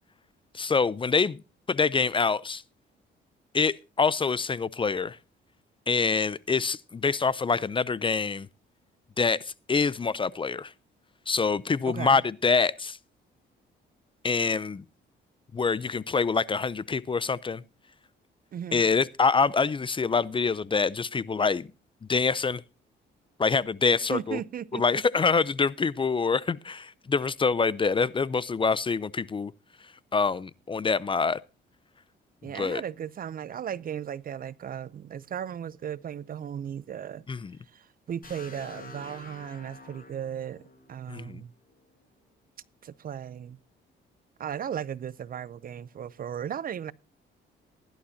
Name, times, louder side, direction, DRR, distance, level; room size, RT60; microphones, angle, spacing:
voice 1, 0.5-1.4 1.7-2.6 3.5-5.2 5.9-8.5 9.2-9.4 9.7-10.7 11.3-13.0 14.2-14.8 15.5-17.6 18.7-21.7 22.1-22.6 23.4-24.4 24.7-29.5 30.1-31.4 32.5-32.8 37.3-37.5 41.1-41.4, left 5 dB, 25° left, 0.5 m, -25 dB
voice 2, 11.9-12.2 18.5-18.8 24.1-25.0 32.4-37.3 37.7-41.5 42.8-43.6 44.4-46.9, right 9 dB, 45° right, 0.5 m, -36 dB
sound 1, 38.2-42.1, left 3 dB, 45° left, 7.6 m, -48 dB
15.5 x 11.5 x 2.8 m
cardioid pair, 90°, 20 cm